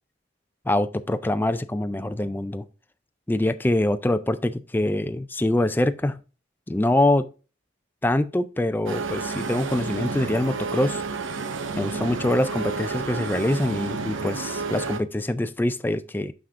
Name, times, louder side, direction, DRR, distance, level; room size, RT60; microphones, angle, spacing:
voice 1, 0.7-2.6 3.3-6.2 6.7-7.3 8.0-11.0 11.8-16.3, left 1 dB, 10° left, 0.4 m, -24 dB
sound 1, 8.9-15.0, right 4 dB, 90° right, 0.8 m, -30 dB
6.3 x 5.8 x 3.5 m
head